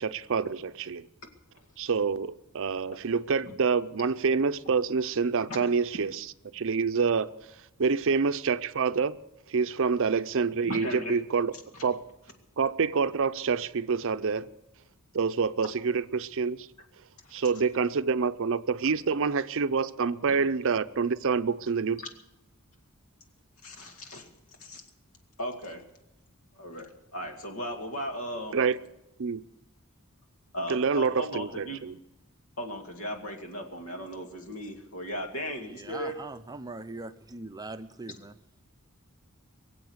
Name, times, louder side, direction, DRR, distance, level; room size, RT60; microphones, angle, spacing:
voice 1, 0.1-1.1 1.8-6.2 6.5-7.3 7.8-9.2 9.5-11.5 11.8-12.0 12.6-14.5 15.1-16.7 17.3-22.0 28.5-28.8 29.2-29.4 30.7-31.9, right 5 dB, 60° right, 0.5 m, -27 dB
voice 2, 10.7-11.1 11.7-11.8 17.2-17.3 18.8-18.9 22.0-22.1 23.6-24.3 24.6-24.8 25.4-25.8 26.6-28.6 30.5-31.8 32.6-36.2, equal, 75° left, 2.3 m, -37 dB
voice 3, 35.6-38.3, right 2 dB, 15° right, 0.5 m, -41 dB
23.0 x 7.7 x 7.9 m
head